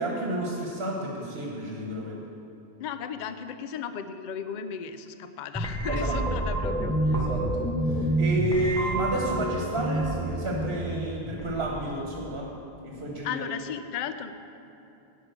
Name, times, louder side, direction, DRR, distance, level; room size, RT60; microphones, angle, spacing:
voice 1, 0.0-2.2 5.9-6.1 7.1-12.5 12.8-13.5, right 1 dB, 70° right, -1 dB, 1.4 m, -31 dB
voice 2, 2.8-7.2 13.2-14.5, left 7 dB, 55° left, 10 dB, 0.6 m, -35 dB
sound 1, 5.5-12.4, right 1 dB, 5° left, 0.7 m, -29 dB
10.5 x 5.4 x 8.1 m, 2.8 s
omnidirectional pair, 1.0 m